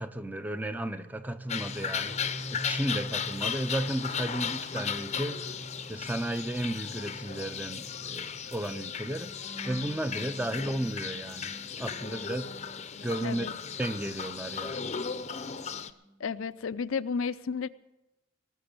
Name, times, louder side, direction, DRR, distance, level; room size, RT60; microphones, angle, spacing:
voice 1, 0.0-2.2 2.5-5.5 5.9-9.4 9.7-12.5 13.0-13.5 13.8-14.9, right 1 dB, 10° right, 0.6 m, -34 dB
sound 1, 1.1-13.4 13.7-15.8 16.1-16.4, right 1 dB, 30° right, 2.0 m, -47 dB
sound 2, 1.5-15.9, left 7 dB, 35° left, 0.6 m, -36 dB
voice 2, 13.2-13.5 16.2-17.7, left 5 dB, 80° left, 0.5 m, -32 dB
18.5 x 6.9 x 8.8 m
head